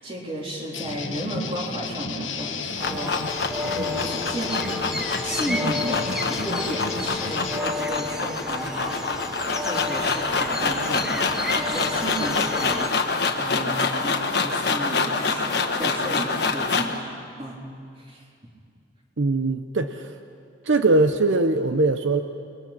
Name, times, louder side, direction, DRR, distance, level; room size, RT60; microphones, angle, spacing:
voice 1, 0.0-4.8 5.2-11.2 11.5-16.9 17.4-17.6 18.0-18.2, right 1 dB, 30° right, -2 dB, 3.7 m, -33 dB
sound 1, 0.7-7.6, left 4 dB, 85° left, 1.4 m, -33 dB
sound 2, 2.4-17.0, left 4 dB, 55° left, 1.4 m, -26 dB
sound 3, 2.8-12.9, left 2 dB, 5° right, 1.2 m, -32 dB
voice 2, 19.2-20.1 20.6-22.2, right 2 dB, 80° right, 8 dB, 0.8 m, -21 dB
30.0 x 21.0 x 6.0 m, 2.3 s
head